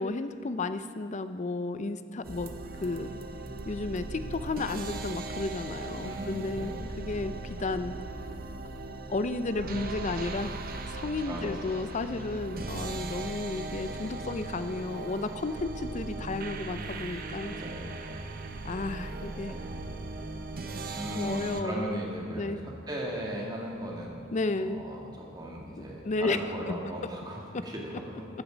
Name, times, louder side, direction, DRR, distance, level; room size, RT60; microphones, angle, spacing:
voice 1, 0.0-2.5 2.8-3.1 3.7-6.7 7.0-8.0 9.1-10.5 10.9-17.6 18.6-19.5 21.1-22.0 22.3-22.6 24.3-24.8 26.0-26.4, left 3 dB, 35° left, 11 dB, 0.5 m, -33 dB
sound 1, 2.2-21.6, right 3 dB, 45° right, 0.7 m, -38 dB
voice 2, 6.0-7.0 11.3-11.8 17.4-18.3 19.1-19.8 20.9-24.3 24.6-28.3, right 1 dB, 20° right, -2 dB, 2.1 m, -38 dB
14.5 x 10.0 x 5.1 m, 2.3 s
head